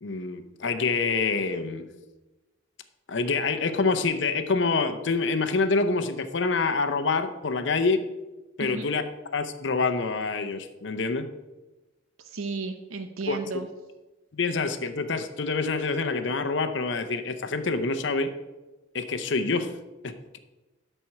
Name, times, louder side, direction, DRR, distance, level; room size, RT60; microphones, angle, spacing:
voice 1, 0.0-1.9 3.1-8.0 8.6-9.0 9.3-11.3 13.3-13.4 14.3-18.3 18.9-19.7 20.0-20.4, left 4 dB, 60° left, 9 dB, 0.7 m, -26 dB
voice 2, 12.2-13.7, right 4 dB, 90° right, 7 dB, 0.7 m, -33 dB
12.5 x 4.5 x 5.7 m, 1.1 s
head